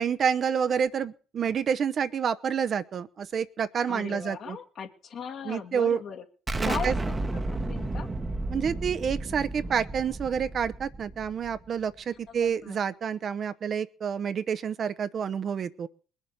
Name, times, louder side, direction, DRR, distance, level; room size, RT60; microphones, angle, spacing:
voice 1, 0.0-4.6 5.4-6.0 6.6-7.0 8.5-15.9, right 7 dB, 45° right, 12 dB, 0.8 m, -28 dB
voice 2, 3.9-6.2 6.6-8.1 12.3-12.8, left 6 dB, 55° left, 5 dB, 2.2 m, -38 dB
Explosion, 6.5-11.9, right 2 dB, 20° right, 1.1 m, -32 dB
20.5 x 7.4 x 6.6 m, 0.40 s
supercardioid pair, 85°, 0 cm